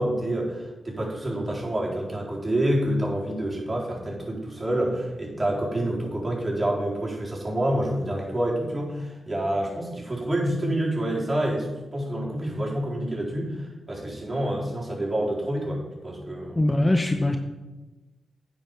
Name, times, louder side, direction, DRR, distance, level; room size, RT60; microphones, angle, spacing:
voice 1, 0.0-16.6, right 1 dB, 25° right, -3 dB, 4.0 m, -28 dB
voice 2, 16.6-17.4, left 1 dB, 25° left, 5 dB, 0.9 m, -21 dB
9.1 x 5.2 x 7.1 m, 1.1 s
supercardioid pair, 45°, 0 cm